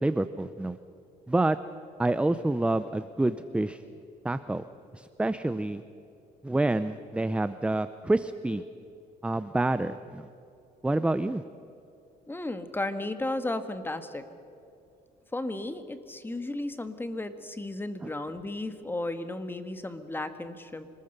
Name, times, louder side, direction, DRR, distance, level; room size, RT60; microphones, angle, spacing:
voice 1, 0.0-0.8 1.3-1.6 2.0-3.8 4.2-4.6 4.9-5.8 6.4-8.6 9.2-10.3 10.8-11.4 18.0-18.1, right 2 dB, 5° right, 12 dB, 0.6 m, -27 dB
voice 2, 12.3-14.3 15.3-20.9, left 2 dB, 10° left, 10 dB, 1.6 m, -34 dB
26.0 x 20.5 x 6.7 m, 2.6 s
cardioid pair, 110°, 17 cm